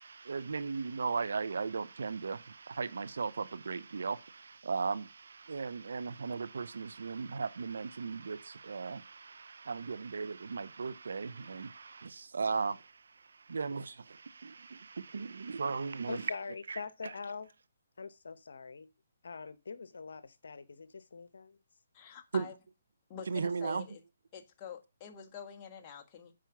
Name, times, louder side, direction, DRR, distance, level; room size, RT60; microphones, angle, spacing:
voice 1, 0.0-13.0 13.3-16.3 16.7-17.1 22.3-22.5 23.3-23.9, right 5 dB, 80° right, 0.8 m, -37 dB
voice 2, 16.1-17.5 18.0-18.9 19.2-21.6, left 5 dB, 80° left, 1.0 m, -43 dB
voice 3, 21.9-22.5 23.1-24.0 24.3-26.3, left 7 dB, 25° left, 1.4 m, -47 dB
7.6 x 5.1 x 5.8 m
hypercardioid pair, 155°, 0 cm